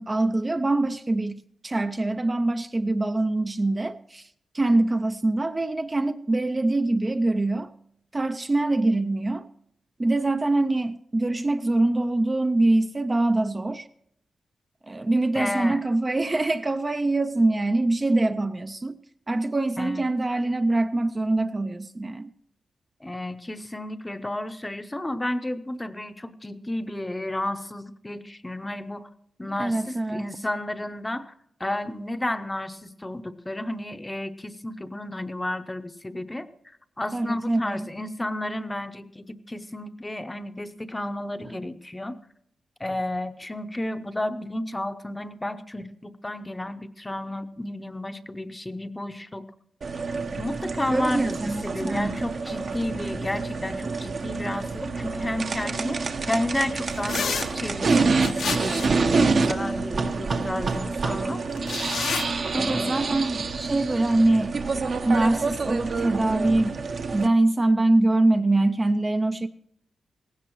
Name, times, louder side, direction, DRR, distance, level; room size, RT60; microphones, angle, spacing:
voice 1, 0.0-4.3 4.5-7.7 8.1-9.5 10.0-13.9 14.9-19.0 19.3-22.3 29.5-30.2 37.1-37.9 50.9-52.1 62.5-64.6 65.0-66.7 67.1-69.5, right 2 dB, 25° right, 0.4 m, -24 dB
voice 2, 15.3-15.8 19.8-20.0 23.0-29.1 29.4-31.3 31.6-36.5 37.0-42.2 42.8-49.5 50.3-61.4 62.5-63.2, left 1 dB, 15° left, 0.7 m, -32 dB
sound 1, 49.8-67.3, right 4 dB, 55° right, 0.9 m, -27 dB
sound 2, 57.1-57.5 58.2-59.0 61.6-62.2, left 6 dB, 80° left, 0.9 m, -29 dB
17.5 x 16.0 x 3.0 m
wide cardioid pair, 110°, 0 cm